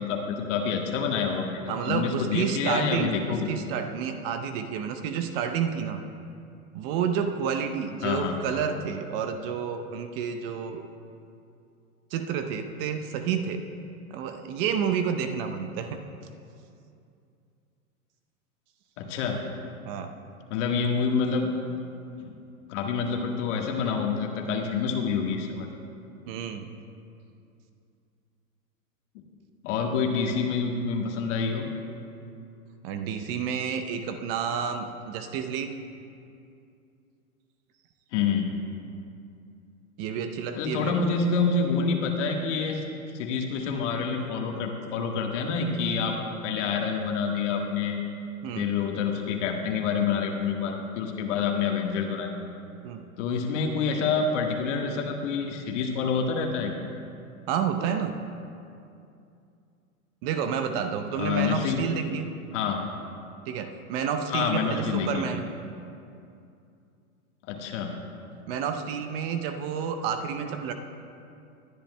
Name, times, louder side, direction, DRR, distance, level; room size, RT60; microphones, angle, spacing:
voice 1, 0.0-3.5 8.0-8.4 19.0-19.4 20.5-21.5 22.1-22.3 22.7-25.7 29.6-31.6 38.1-38.5 40.5-42.8 43.1-48.0 48.5-52.3 53.2-56.7 61.2-61.8 62.5-62.8 64.3-65.3 67.5-68.0, left 5 dB, 55° left, 2 dB, 1.5 m, -27 dB
voice 2, 1.7-3.1 3.5-6.0 6.7-10.8 12.1-13.7 14.1-16.0 19.9-20.1 26.3-26.7 32.8-35.8 40.0-40.9 48.4-48.7 52.8-53.0 57.5-58.2 60.2-62.3 63.5-65.5 68.5-70.7, right 7 dB, 40° right, 7 dB, 0.7 m, -30 dB
20.5 x 10.0 x 2.2 m, 2.5 s
hypercardioid pair, 120°, 44 cm